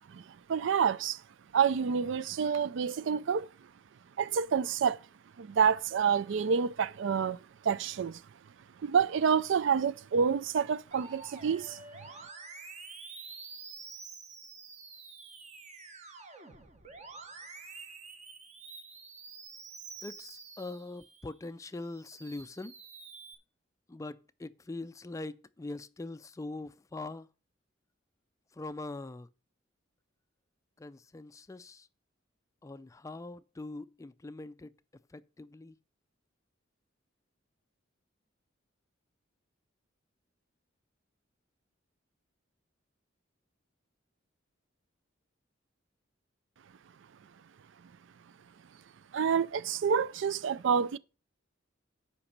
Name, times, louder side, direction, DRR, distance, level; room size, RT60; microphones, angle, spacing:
voice 1, 0.5-1.2 1.5-3.5 4.2-5.0 5.4-8.2 8.8-11.8 49.1-51.0, right 6 dB, 65° right, 0.4 m, -28 dB
Musical instrument, 10.9-21.3 21.8-23.3, right 4 dB, 35° right, 1.2 m, -48 dB
voice 2, 20.0-22.7 23.9-27.3 28.5-29.3 30.8-31.9 32.6-34.7 35.1-35.8, left 2 dB, 15° left, 0.3 m, -42 dB
8.8 x 5.2 x 6.5 m
head